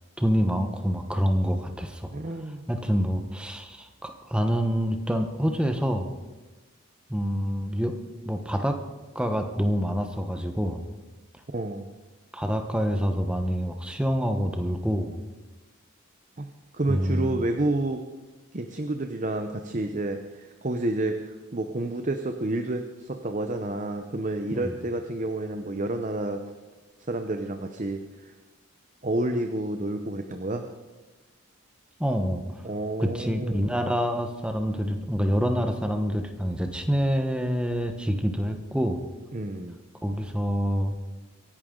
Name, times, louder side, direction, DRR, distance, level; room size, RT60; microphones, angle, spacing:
voice 1, 0.2-2.1 2.7-6.1 7.1-7.9 8.2-8.8 9.1-10.8 12.3-15.2 16.9-17.5 24.5-24.6 32.0-32.4 33.0-39.0 40.0-40.9, equal, 5° right, 5 dB, 1.1 m, -26 dB
voice 2, 2.1-2.6 11.5-11.9 16.4-16.5 16.7-18.0 18.5-26.4 27.1-28.3 29.0-30.6 32.6-33.8 39.3-39.8, right 2 dB, 35° right, 6 dB, 0.8 m, -30 dB
25.0 x 11.0 x 3.9 m, 1.2 s
head